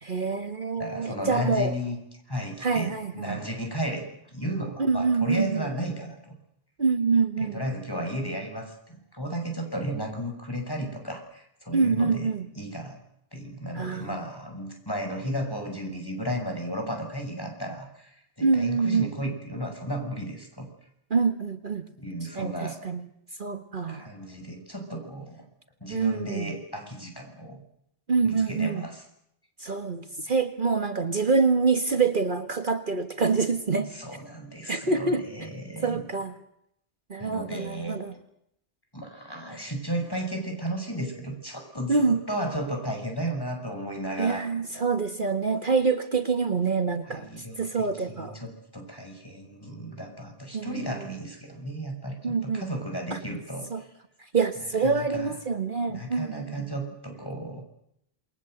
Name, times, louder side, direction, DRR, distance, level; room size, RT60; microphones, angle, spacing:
voice 1, 0.0-1.8 2.6-3.4 4.8-5.7 6.8-7.6 11.7-12.5 13.7-14.2 18.4-19.1 21.1-21.8 22.4-23.1 23.4-24.1 25.9-26.5 28.1-28.9 29.6-33.9 34.7-35.2 35.8-36.3 37.1-38.1 41.9-42.2 44.2-48.4 50.5-51.0 52.2-52.7 53.1-53.2 53.7-53.8 54.2-56.5, right 4 dB, 50° right, 8 dB, 1.7 m, -26 dB
voice 2, 0.8-2.0 2.3-6.3 7.4-12.3 12.6-13.0 13.3-20.7 22.0-22.8 23.9-25.5 25.8-27.6 28.2-29.0 33.9-36.0 37.2-38.0 38.9-44.4 47.0-47.9 48.2-53.9 54.8-55.3 55.9-57.6, equal, 20° left, 3 dB, 6.6 m, -34 dB
28.5 x 22.0 x 8.0 m, 0.76 s
omnidirectional pair, 1.1 m